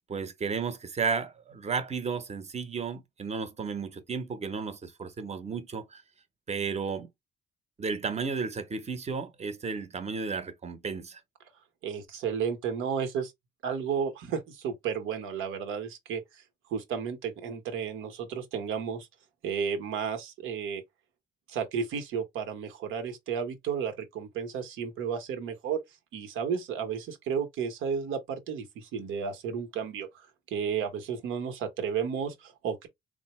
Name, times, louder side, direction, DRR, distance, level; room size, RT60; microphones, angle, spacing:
voice 1, 0.1-6.0 6.5-7.1 7.8-11.2, right 5 dB, 35° right, 0.7 m, -33 dB
voice 2, 11.8-13.3 13.6-16.4 16.7-19.1 19.4-20.8 21.5-25.8 26.1-32.9, right 7 dB, 85° right, 0.9 m, -33 dB
3.7 x 2.0 x 3.0 m
cardioid pair, 90°, 20 cm